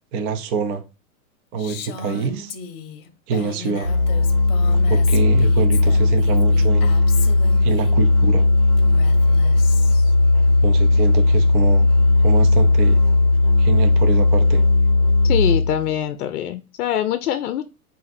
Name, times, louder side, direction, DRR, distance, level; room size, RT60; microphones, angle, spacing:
voice 1, 0.1-0.8 1.5-2.5 3.3-3.9 4.7-6.9 7.6-8.4 10.6-11.9 12.2-13.0 13.6-14.6, right 5 dB, 25° right, 0.4 m, -25 dB
Female speech woman speaking, 1.6-7.9 8.8-10.1, left 6 dB, 40° left, 0.8 m, -36 dB
Musical instrument, 3.8-15.9, left 2 dB, 75° right, 1.4 m, -16 dB
voice 2, 15.2-17.6, left 11 dB, 85° left, 0.6 m, -24 dB
3.8 x 2.6 x 4.1 m
hypercardioid pair, 120°, 44 cm